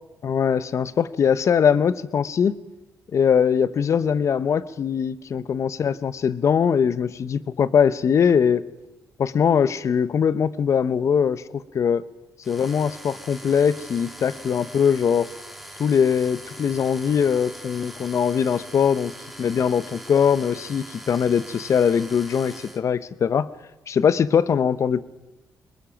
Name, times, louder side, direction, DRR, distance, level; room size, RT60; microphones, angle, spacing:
voice 1, 0.2-2.6 3.1-8.6 9.2-12.0 12.5-15.3 15.8-19.1 19.4-23.5 23.9-25.0, left 7 dB, 55° left, 17 dB, 0.8 m, -21 dB
sound 1, 12.4-22.8, right 1 dB, ahead, 2.4 m, -42 dB
24.0 x 21.0 x 5.9 m, 1.0 s
cardioid pair, 75°, 6 cm